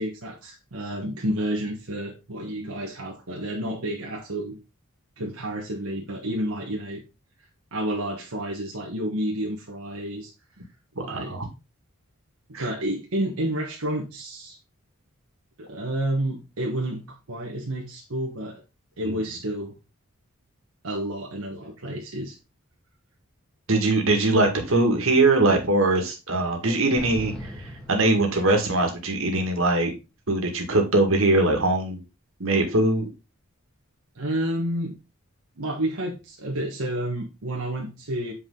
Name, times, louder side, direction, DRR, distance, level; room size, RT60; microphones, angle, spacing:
voice 1, 0.0-4.6 5.2-7.0 7.7-10.3 10.9-11.4 12.6-14.6 15.6-18.6 19.0-19.7 20.8-22.4 34.1-35.0 35.6-38.3, right 1 dB, 85° right, 1.4 m, -30 dB
voice 2, 11.1-11.4 12.5-12.6 19.0-19.2 23.7-29.9 30.3-32.0 32.4-33.1, right 2 dB, 65° right, 2.1 m, -22 dB
sound 1, 27.0-28.9, equal, 5° left, 1.7 m, -39 dB
8.1 x 4.9 x 3.9 m
head